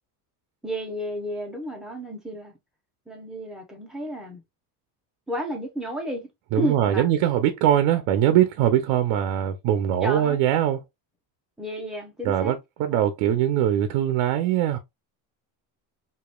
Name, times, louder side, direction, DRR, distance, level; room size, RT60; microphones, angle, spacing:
voice 1, 0.6-2.5 3.1-4.4 5.3-6.3 6.6-7.1 10.0-10.4 11.6-12.6 12.9-13.0, equal, ahead, 0.9 m, -32 dB
voice 2, 6.5-10.8 12.2-14.8, right 11 dB, 70° right, 0.7 m, -22 dB
4.9 x 2.7 x 2.3 m
cardioid pair, 165°, 47 cm